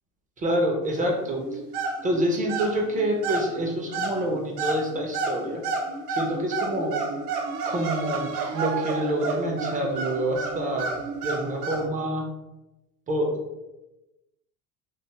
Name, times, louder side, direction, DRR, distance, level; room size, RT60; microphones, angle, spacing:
voice 1, 0.4-1.6 2.0-5.6 6.1-7.0 7.7-10.9 11.2-12.3 13.1-13.4, right 1 dB, 20° right, 1 dB, 0.4 m, -27 dB
sound 1, 1.3-11.9, right 4 dB, 85° right, 0.6 m, -31 dB
2.4 x 2.3 x 2.8 m, 1.0 s
supercardioid pair, 100°, 45 cm